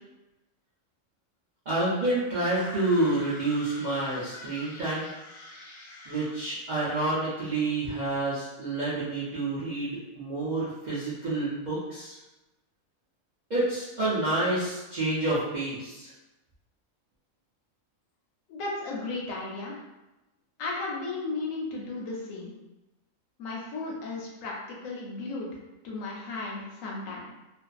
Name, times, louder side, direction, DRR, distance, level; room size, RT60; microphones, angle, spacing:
voice 1, 1.7-5.1 6.1-12.2 13.5-16.1, right 2 dB, 55° right, -10 dB, 0.5 m, -28 dB
sound 1, 2.5-6.4, left 2 dB, 60° left, 0.7 m, -44 dB
voice 2, 18.5-19.8 20.6-22.5 23.4-25.5 25.8-27.2, left 3 dB, 80° left, -3 dB, 1.0 m, -35 dB
2.5 x 2.3 x 2.3 m, 1.0 s
omnidirectional pair, 1.4 m